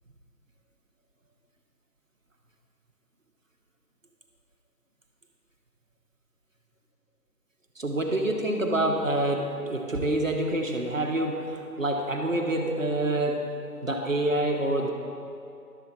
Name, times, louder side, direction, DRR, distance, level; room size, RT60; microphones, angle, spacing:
voice 1, 7.8-13.5 13.8-14.9, right 1 dB, 50° right, 2 dB, 1.1 m, -27 dB
12.0 x 7.3 x 4.0 m, 2.5 s
figure-of-eight pair, 175°, 49 cm